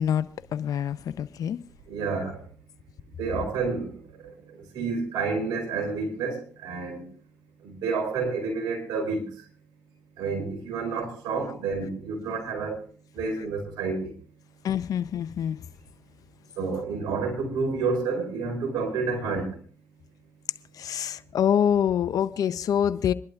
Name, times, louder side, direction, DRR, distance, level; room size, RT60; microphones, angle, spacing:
voice 1, 0.0-1.6 14.6-15.6 20.8-23.1, left 9 dB, 60° left, 0.6 m, -26 dB
voice 2, 1.9-2.4 3.2-3.9 4.7-7.0 7.6-9.2 10.2-12.8 13.2-14.1 16.6-19.5, right 4 dB, 80° right, 4.3 m, -29 dB
26.5 x 11.5 x 2.4 m
supercardioid pair, 55°, 7 cm